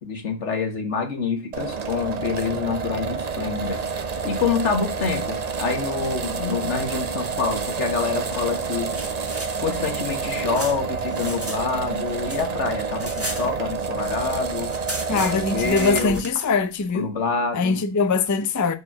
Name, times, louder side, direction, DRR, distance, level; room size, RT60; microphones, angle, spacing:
voice 1, 0.0-3.9 4.2-8.9 9.6-14.7 15.1-16.2 16.9-17.8, left 5 dB, 90° left, 1.8 m, -26 dB
sound 1, 1.5-16.2, right 5 dB, 45° right, 0.6 m, -29 dB
sound 2, 8.9-11.6 11.9-14.1 14.3-14.4 14.6-16.5, right 1 dB, 15° right, 1.2 m, -35 dB
voice 2, 15.1-17.1 17.5-18.8, left 4 dB, 25° left, 0.4 m, -22 dB
4.9 x 4.7 x 6.0 m
omnidirectional pair, 1.2 m